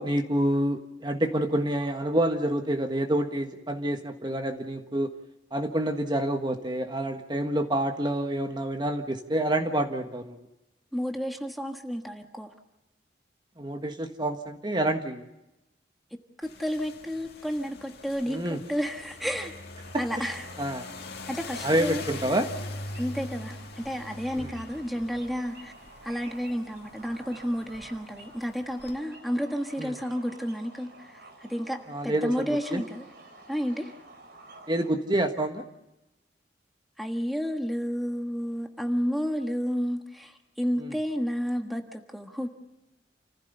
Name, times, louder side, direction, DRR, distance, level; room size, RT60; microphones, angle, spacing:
voice 1, 0.0-5.1 5.5-10.5 13.6-15.2 18.3-18.6 20.6-20.9 21.6-22.5 24.4-24.5 29.8-30.0 31.9-32.8 34.7-35.7 40.8-41.0, right 1 dB, 25° right, 6 dB, 1.5 m, -28 dB
voice 2, 10.9-12.5 16.4-19.5 20.0-20.4 21.3-22.0 23.0-25.7 26.0-33.0 33.5-33.9 37.0-42.5, equal, ahead, 4 dB, 1.4 m, -31 dB
sound 1, 16.4-29.0, left 2 dB, 60° left, 2.1 m, -42 dB
sound 2, 19.8-34.9, right 2 dB, 60° right, 4.2 m, -51 dB
29.0 x 15.5 x 6.8 m, 0.95 s
head